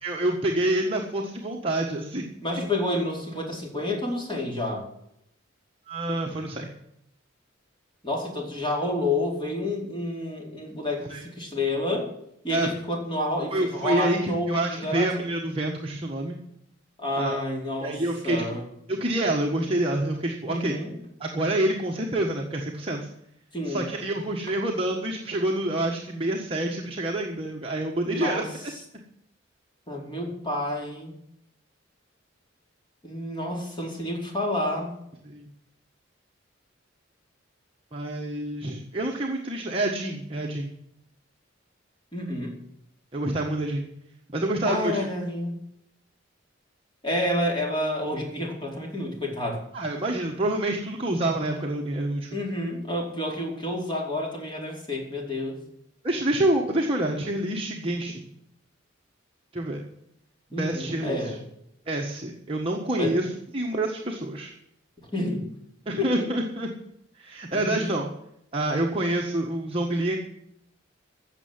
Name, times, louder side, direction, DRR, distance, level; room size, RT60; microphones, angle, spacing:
voice 1, 0.0-2.2 5.9-6.7 11.1-11.2 12.5-12.7 13.5-16.4 17.2-17.4 17.8-18.4 18.9-20.8 21.2-23.1 23.6-28.4 35.2-35.4 37.9-40.7 43.1-43.9 44.3-45.0 49.7-52.3 56.0-58.2 59.5-59.8 60.5-61.3 61.9-63.3 63.5-64.5 65.8-66.7 67.2-68.1 68.5-70.2, right 1 dB, 30° right, -1 dB, 1.5 m, -27 dB
voice 2, 2.4-4.8 8.0-12.1 12.4-15.1 17.0-18.0 18.2-18.7 20.5-20.9 23.5-23.9 28.0-28.5 29.9-31.1 33.0-34.9 42.1-42.5 44.6-45.6 47.0-49.6 52.3-55.6 60.5-61.4 62.9-63.2 65.1-65.5 66.0-66.1 67.5-67.9, left 1 dB, 25° left, -1 dB, 4.7 m, -29 dB
15.5 x 7.1 x 9.5 m, 0.75 s
head